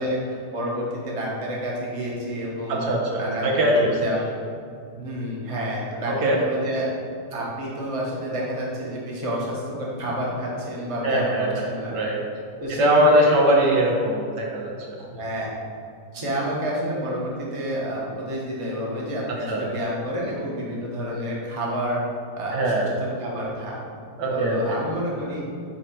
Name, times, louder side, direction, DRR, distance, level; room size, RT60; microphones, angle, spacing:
voice 1, 0.0-2.8 3.2-4.2 5.0-6.9 7.3-12.0 12.6-13.7 15.0-15.5 16.1-22.0 22.4-23.8 24.3-25.5, equal, 20° right, -4 dB, 1.1 m, -29 dB
voice 2, 2.7-3.9 6.1-6.4 11.0-12.2 12.7-14.7 19.5-19.7 22.5-22.9 24.2-24.8, right 1 dB, 85° right, -1 dB, 1.7 m, -21 dB
9.4 x 3.2 x 4.5 m, 2.4 s
omnidirectional pair, 1.8 m